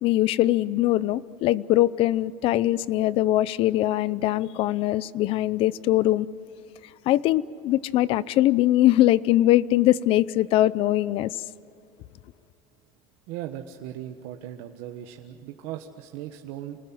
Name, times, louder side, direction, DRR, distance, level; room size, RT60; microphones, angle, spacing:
voice 1, 0.0-6.3 7.1-11.4, left 15 dB, 50° left, 0.7 m, -22 dB
voice 2, 13.3-16.8, right 12 dB, 70° right, 1.5 m, -38 dB
28.5 x 20.0 x 8.0 m
cardioid pair, 140°, 12 cm